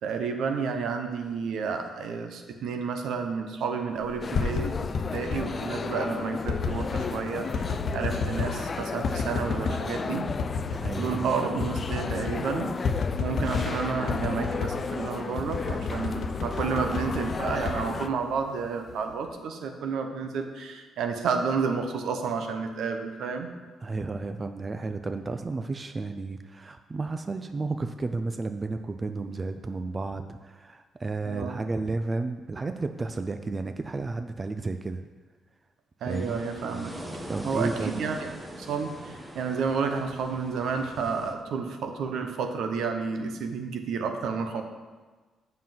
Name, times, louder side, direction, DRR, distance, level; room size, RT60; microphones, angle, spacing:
voice 1, 0.0-10.3 11.0-12.8 13.2-23.5 31.3-31.6 36.0-36.9 37.4-38.3 38.6-44.6, right 5 dB, 75° right, 5 dB, 0.9 m, -31 dB
sound 1, 4.1-5.5 6.5-7.1 7.5-8.6 9.0-9.8 10.3-11.0 11.3-11.4 11.6-12.4 12.8-13.8 14.1-14.8 15.4-18.5 18.9-19.3, left 5 dB, 60° left, 0.8 m, -30 dB
sound 2, 4.2-18.1, left 4 dB, 35° left, 0.4 m, -34 dB
voice 2, 10.8-11.3 23.8-35.1 36.0-36.4 37.3-37.9, right 3 dB, 30° right, 7 dB, 0.4 m, -32 dB
sound 3, 36.1-41.3, equal, 10° right, 1.1 m, -42 dB
7.4 x 5.6 x 5.9 m, 1.3 s
cardioid pair, 100°, 0 cm